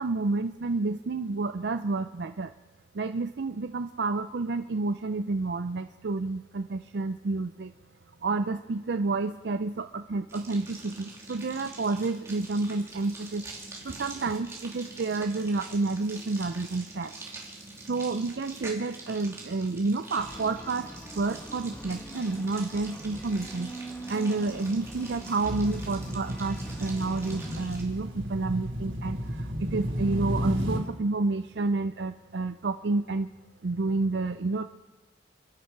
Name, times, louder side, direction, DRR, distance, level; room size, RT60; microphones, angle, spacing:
voice 1, 0.0-2.5 2.9-7.7 8.2-13.4 13.8-17.2 17.9-23.8 24.1-33.3 33.6-34.6, right 3 dB, 60° right, 9 dB, 0.5 m, -30 dB
sound 1, 10.3-27.8, right 2 dB, 15° right, 2.7 m, -45 dB
sound 2, 20.2-27.7, right 1 dB, 10° left, 1.4 m, -43 dB
sound 3, 25.4-30.8, equal, 90° right, 3.6 m, -33 dB
29.5 x 10.5 x 4.7 m, 1.2 s
head